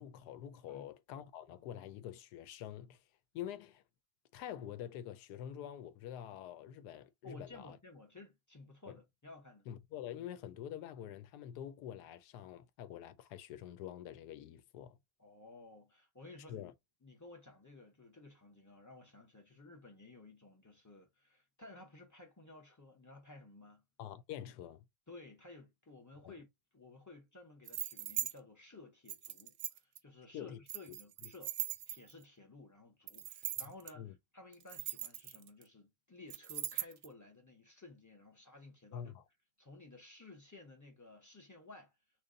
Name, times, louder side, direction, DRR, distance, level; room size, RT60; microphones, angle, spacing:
voice 1, 0.0-3.0 3.3-3.8 4.3-7.8 8.9-9.0 9.7-15.0 16.5-16.7 24.0-24.8 26.2-26.3 30.3-30.6 31.2-31.3 34.0-34.1 38.9-39.1, left 10 dB, 75° left, 1.1 m, -46 dB
voice 2, 7.2-9.7 15.2-16.7 17.0-23.8 25.1-31.5 31.9-39.1 39.6-41.9, left 2 dB, 20° left, 0.4 m, -55 dB
sound 1, 27.7-28.3 29.1-30.0 30.7-32.2 33.1-33.9 34.5-35.6 36.3-37.1, right 13 dB, 70° right, 0.9 m, -40 dB
3.1 x 2.6 x 3.8 m
omnidirectional pair, 1.9 m